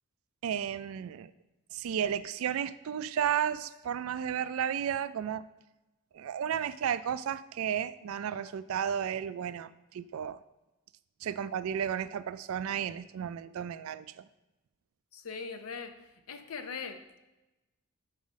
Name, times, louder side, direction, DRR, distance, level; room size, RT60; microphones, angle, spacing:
voice 1, 0.4-1.3 1.7-5.5 6.1-10.4 11.2-14.3, right 8 dB, 75° right, 16 dB, 0.3 m, -33 dB
voice 2, 15.1-15.9 16.3-17.2, left 5 dB, 80° left, 7 dB, 0.7 m, -40 dB
5.6 x 4.9 x 6.2 m, 1.0 s
head